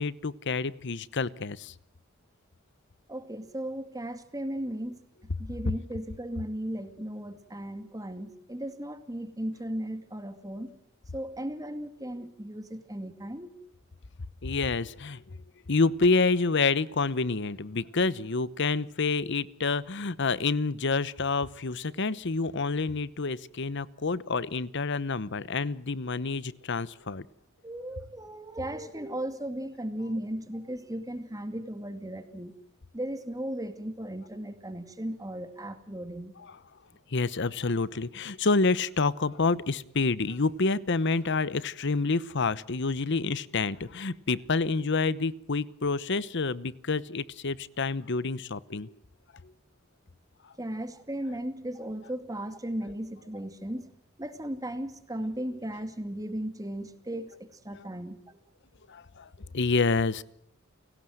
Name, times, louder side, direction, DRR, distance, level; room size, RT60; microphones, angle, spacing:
voice 1, 0.0-1.7 14.4-15.4 15.7-27.3 36.4-36.6 37.1-48.9 57.7-57.8 58.9-59.3 59.5-60.2, left 3 dB, 60° left, 18 dB, 0.9 m, -28 dB
voice 2, 3.1-5.0 5.4-10.7 11.1-13.6 27.6-32.5 32.9-36.3 50.6-53.8 54.2-58.4, right 1 dB, 15° right, 9 dB, 2.3 m, -36 dB
30.0 x 18.0 x 7.9 m, 0.75 s
head